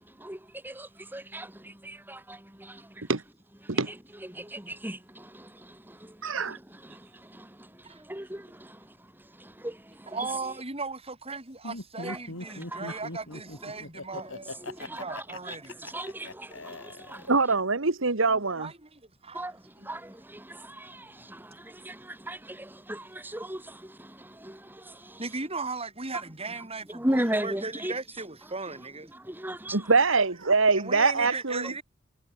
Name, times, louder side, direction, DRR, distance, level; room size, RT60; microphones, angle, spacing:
voice 1, 0.2-3.1 3.6-3.7 4.3-8.9 9.3-10.3 12.0-12.2 12.6-13.0 14.6-17.3 19.3-25.2 26.9-27.9 29.1-29.8, right 1 dB, 10° right, 3.7 m, -37 dB
voice 2, 6.2-6.6 17.3-18.7 29.7-31.7, right 4 dB, 75° right, 1.8 m, -24 dB
voice 3, 10.1-15.8 18.3-19.5 19.8-19.9 25.2-29.1 30.7-31.8, right 3 dB, 30° right, 7.1 m, -37 dB
Laughter, 11.6-17.6, left 2 dB, 75° left, 5.2 m, -40 dB
head